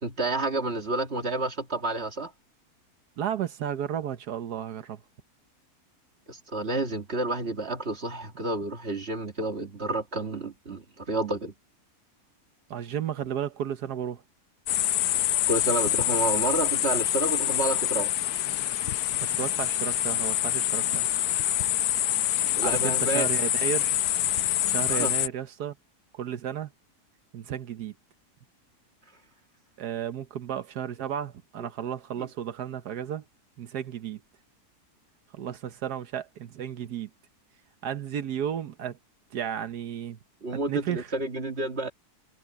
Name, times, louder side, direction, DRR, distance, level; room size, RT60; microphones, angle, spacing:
voice 1, 0.0-2.3 6.3-11.5 15.5-18.1 22.6-23.3 24.9-25.1 32.2-32.3 40.4-41.9, right 2 dB, 40° right, 2.2 m, -30 dB
voice 2, 3.2-5.0 12.7-14.2 19.2-21.1 22.6-24.0 24.7-25.7 26.1-26.7 27.3-27.9 29.8-33.2 33.6-34.2 35.3-37.1 37.8-39.0 39.3-40.2 40.5-41.1, right 9 dB, 85° right, 1.5 m, -33 dB
sound 1, 14.7-25.3, left 13 dB, 80° left, 1.1 m, -26 dB
omnidirectional pair, 1.7 m